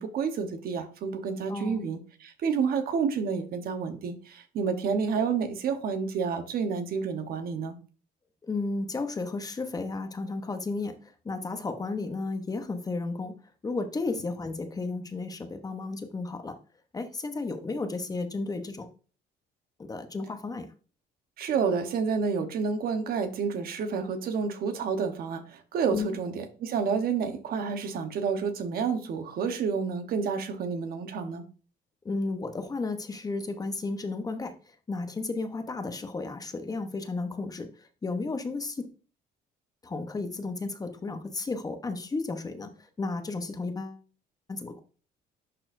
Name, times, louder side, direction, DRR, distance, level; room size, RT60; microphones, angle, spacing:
voice 1, 0.0-7.8 21.4-31.4, right 6 dB, 60° right, 7 dB, 1.1 m, -29 dB
voice 2, 1.5-1.8 8.4-13.3 13.6-16.5 16.9-18.9 19.9-20.7 25.9-26.1 32.0-34.5 34.9-38.8 39.8-44.0 44.5-44.8, left 3 dB, 20° left, 7 dB, 0.9 m, -33 dB
11.0 x 4.2 x 2.6 m, 0.38 s
cardioid pair, 110°, 17 cm